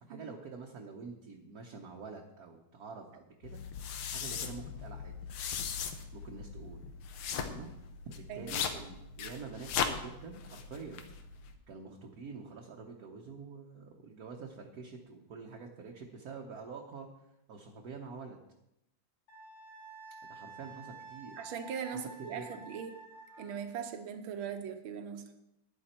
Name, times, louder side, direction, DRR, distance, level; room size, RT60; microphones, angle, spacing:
voice 1, 0.0-3.6 4.1-5.2 6.1-6.8 7.4-7.7 8.0-11.0 11.7-17.1 17.5-18.4 20.2-21.4 21.9-22.6, right 4 dB, 55° right, 0 dB, 1.3 m, -47 dB
sound 1, 3.4-11.5, left 7 dB, 80° left, 1.8 m, -39 dB
Wind instrument woodwind instrument, 19.3-23.6, right 3 dB, 60° left, 3.6 m, -50 dB
voice 2, 21.4-23.0 23.4-25.3, right 7 dB, 75° right, 7 dB, 1.8 m, -40 dB
12.0 x 9.9 x 4.4 m, 0.86 s
omnidirectional pair, 2.3 m